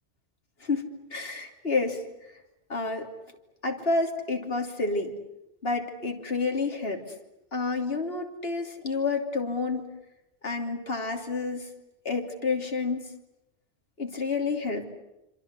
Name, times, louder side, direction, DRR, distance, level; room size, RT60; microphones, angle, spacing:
voice 1, 0.6-2.0 2.7-3.1 3.6-5.1 5.6-7.1 7.5-9.9 10.4-11.7 12.0-13.1 14.0-14.8, left 3 dB, 65° left, 3 dB, 3.4 m, -29 dB
27.0 x 26.5 x 8.3 m, 0.91 s
omnidirectional pair, 1.1 m